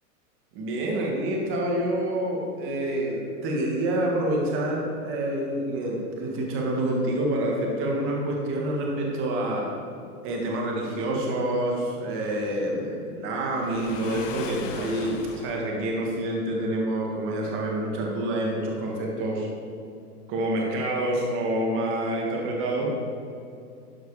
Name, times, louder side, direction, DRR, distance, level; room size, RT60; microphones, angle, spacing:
voice 1, 0.5-9.7 10.2-19.5 20.3-22.9, right 1 dB, 25° right, -2 dB, 1.8 m, -27 dB
Waves surf, 13.5-15.7, left 6 dB, 55° left, 0.9 m, -38 dB
12.0 x 5.0 x 4.9 m, 2.5 s
hypercardioid pair, 140°, 46 cm